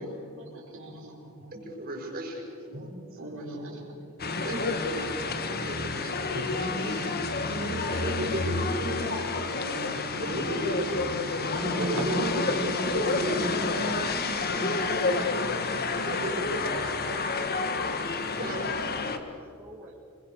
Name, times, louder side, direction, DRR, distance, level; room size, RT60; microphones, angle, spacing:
voice 1, 0.0-1.6 3.2-7.7 8.2-8.6 9.5-12.5 15.7-15.8 19.8-19.9, right 1 dB, 65° right, -2 dB, 4.8 m, -41 dB
voice 2, 1.5-2.9 4.4-7.0 7.5-9.3 10.1-11.0 11.4-12.2 12.5-15.5 15.9-16.9 18.4-18.9, right 1 dB, 45° right, 0 dB, 5.9 m, -34 dB
sound 1, 4.2-19.2, left 4 dB, 45° left, 1.5 m, -30 dB
voice 3, 19.1-19.9, right 1 dB, 10° right, -3 dB, 2.5 m, -53 dB
26.5 x 22.0 x 6.8 m, 2.5 s
head